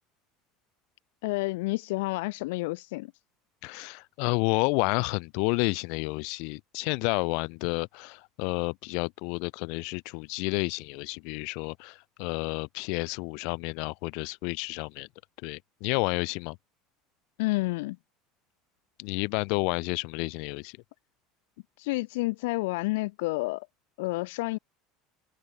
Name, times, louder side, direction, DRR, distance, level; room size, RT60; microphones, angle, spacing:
voice 1, 1.2-3.1 17.4-18.0 21.8-23.7 24.0-24.6, left 22 dB, 85° left, 2.3 m, -29 dB
voice 2, 3.6-15.1 15.4-16.6 19.0-20.8, left 34 dB, 65° left, 3.2 m, -30 dB
cardioid pair, 160°, 0 cm